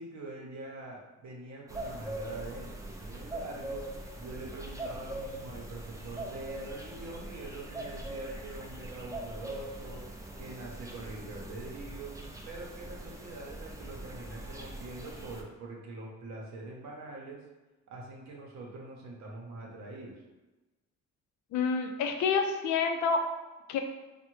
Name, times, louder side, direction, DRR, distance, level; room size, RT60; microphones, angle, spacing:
voice 1, 0.0-3.8 4.2-12.2 12.4-17.4 17.9-20.2, right 2 dB, 65° right, -2 dB, 0.7 m, -44 dB
sound 1, 1.7-15.4, right 1 dB, 10° right, 0.4 m, -42 dB
voice 2, 21.5-23.2 23.7-23.8, left 5 dB, 70° left, 5 dB, 0.5 m, -28 dB
3.3 x 2.1 x 3.0 m, 1.1 s
cardioid pair, 90°, 30 cm